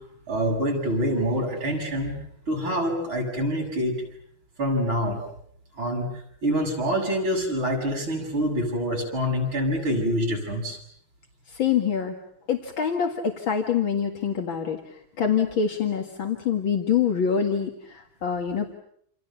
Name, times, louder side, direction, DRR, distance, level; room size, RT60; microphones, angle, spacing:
voice 1, 0.3-2.1 2.5-4.0 4.6-5.2 5.8-6.1 6.4-10.8, equal, 80° right, 0 dB, 8.3 m, -26 dB
voice 2, 11.5-12.1 12.5-14.8 15.2-18.7, left 7 dB, 70° left, 3 dB, 2.6 m, -25 dB
28.5 x 27.5 x 7.0 m, 0.69 s
omnidirectional pair, 2.2 m